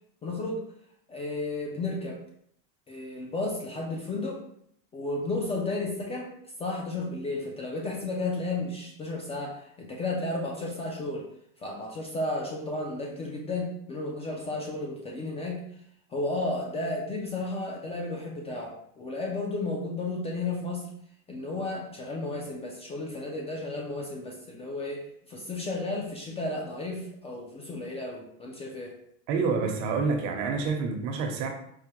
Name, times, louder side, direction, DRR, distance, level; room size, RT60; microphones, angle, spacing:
voice 1, 0.2-0.7 1.1-2.2 2.9-4.4 4.9-11.3 11.6-15.7 16.1-20.9 21.3-29.0, left 2 dB, 15° left, -1 dB, 0.3 m, -33 dB
voice 2, 29.3-31.5, right 4 dB, 70° right, 3 dB, 0.9 m, -28 dB
4.8 x 2.2 x 3.0 m, 0.68 s
supercardioid pair, 140°, 38 cm